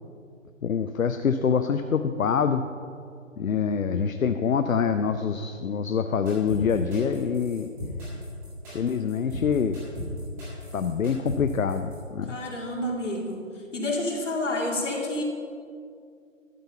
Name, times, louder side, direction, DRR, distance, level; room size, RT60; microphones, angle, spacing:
voice 1, 0.6-2.6 3.4-7.7 8.7-9.8 10.7-12.4, left 6 dB, 80° left, 9 dB, 0.7 m, -25 dB
sound 1, 6.3-12.0, left 1 dB, 5° right, 1.9 m, -37 dB
voice 2, 12.2-13.4 13.7-15.2, left 1 dB, 65° left, 0 dB, 2.5 m, -29 dB
12.5 x 7.1 x 5.7 m, 2.3 s
figure-of-eight pair, 165°, 40 cm